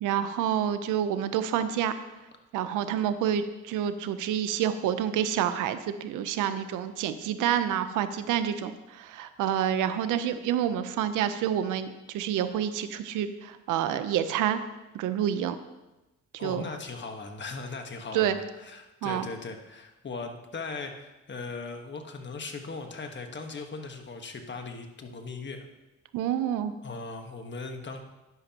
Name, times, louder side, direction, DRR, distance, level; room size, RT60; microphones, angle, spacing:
voice 1, 0.0-1.9 2.5-14.6 14.9-15.6 16.3-16.6 18.1-18.4 19.0-19.3 26.1-26.7, right 10 dB, 90° right, 11 dB, 0.7 m, -28 dB
voice 2, 16.4-25.7 26.8-28.0, left 4 dB, 35° left, 5 dB, 1.4 m, -39 dB
11.0 x 10.5 x 2.9 m, 1.0 s
cardioid pair, 90°, 30 cm